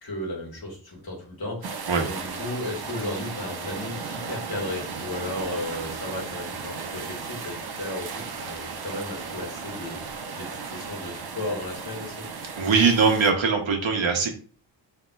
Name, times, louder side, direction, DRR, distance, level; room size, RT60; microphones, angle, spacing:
voice 1, 0.0-12.3, left 1 dB, 50° left, -1 dB, 1.7 m, -35 dB
sound 1, 1.6-13.3, right 5 dB, 55° right, 0.7 m, -35 dB
voice 2, 12.6-14.3, right 5 dB, 80° right, 3 dB, 1.2 m, -21 dB
6.2 x 3.4 x 2.4 m, 0.41 s
wide cardioid pair, 175°, 46 cm